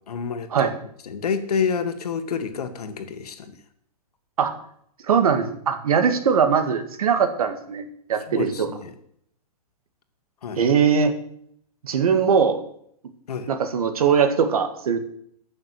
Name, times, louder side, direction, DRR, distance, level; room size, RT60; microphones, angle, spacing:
voice 1, 0.1-0.7 1.0-3.5 8.3-8.9 10.4-10.6 13.3-13.5, left 6 dB, 75° left, 8 dB, 1.9 m, -28 dB
voice 2, 5.1-7.8 8.1-8.7 10.6-11.2 11.8-12.6 13.5-15.0, right 6 dB, 70° right, 8 dB, 1.9 m, -20 dB
12.5 x 6.5 x 7.7 m, 0.69 s
hypercardioid pair, 175°, 20 cm